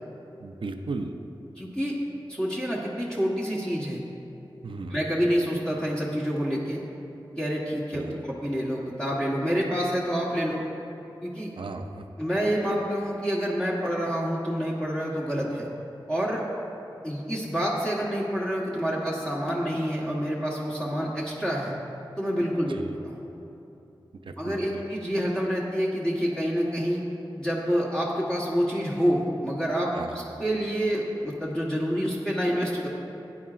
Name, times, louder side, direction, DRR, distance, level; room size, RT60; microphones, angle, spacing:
voice 1, 0.4-1.2 4.6-5.0 7.9-8.2 11.6-12.1 22.9-23.0 24.3-24.6 30.0-30.1, right 3 dB, 75° right, 6 dB, 0.5 m, -35 dB
voice 2, 1.6-2.0 2.3-4.0 4.9-6.8 7.4-10.6 11.2-11.5 12.2-15.7 16.1-16.4 17.0-21.7 22.2-22.8 23.0-23.2 24.4-27.0 27.3-32.9, equal, 10° left, -6 dB, 1.3 m, -27 dB
17.0 x 9.6 x 2.5 m, 2.9 s
wide cardioid pair, 90°, 9 cm